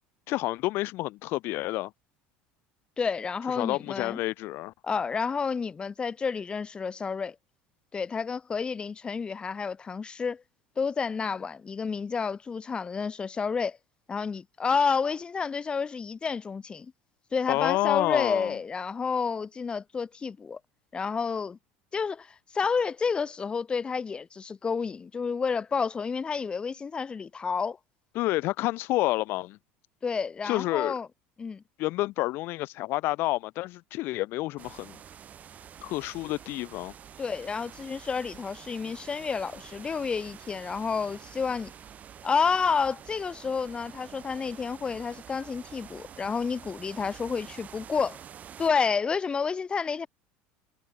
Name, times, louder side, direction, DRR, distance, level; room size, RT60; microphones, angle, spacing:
voice 1, 0.3-1.9 3.6-4.7 17.5-18.6 28.1-29.6 30.4-30.9 31.8-35.0 35.8-36.9, left 19 dB, 60° left, 1.4 m, -29 dB
voice 2, 3.0-4.2 4.8-7.3 7.9-10.4 10.8-13.8 14.1-16.9 17.3-20.6 20.9-21.6 21.9-27.8 30.0-31.1 31.4-31.6 37.2-41.7 42.2-48.2 48.6-50.1, left 5 dB, 25° left, 1.3 m, -30 dB
sound 1, 34.6-48.7, right 9 dB, 35° right, 6.1 m, -48 dB
supercardioid pair, 115°, 4 cm